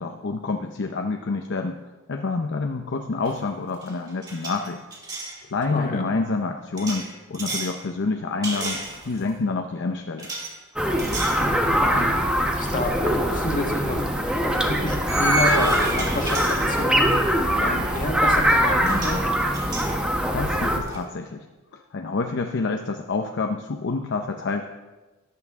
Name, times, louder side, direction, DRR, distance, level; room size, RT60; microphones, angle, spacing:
voice 1, 0.0-1.8 2.1-4.8 5.5-10.3 20.3-21.5 21.7-24.6, left 3 dB, 55° left, 4 dB, 0.6 m, -28 dB
sound 1, 3.2-3.5 3.7-5.4 6.8-7.8 8.4-9.3 10.2-10.5 11.0-11.4 11.9-12.1 13.6-13.7 15.1-17.1 18.5-18.6 18.8-19.2 19.5-21.0, right 2 dB, 20° right, 2.5 m, -32 dB
voice 2, 5.7-6.1 11.4-12.1 12.4-19.3, left 1 dB, 40° left, 2 dB, 1.6 m, -29 dB
sound 2, 10.8-20.8, equal, 5° right, 1.1 m, -22 dB
14.0 x 11.0 x 3.6 m, 1.2 s
head